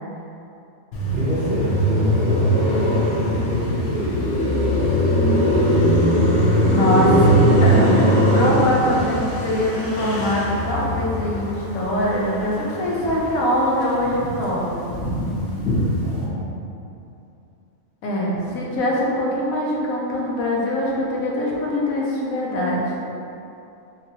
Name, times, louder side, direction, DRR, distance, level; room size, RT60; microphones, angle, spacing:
Car passing by, 0.9-13.4 13.7-16.2, equal, 70° left, 0.9 m, -20 dB
voice 1, 1.1-4.3 15.1-16.5, right 1 dB, 55° right, -7 dB, 0.8 m, -28 dB
voice 2, 6.7-14.9 18.0-22.8, equal, 90° left, -4 dB, 1.1 m, -23 dB
3.0 x 2.9 x 2.6 m, 2.7 s
omnidirectional pair, 1.4 m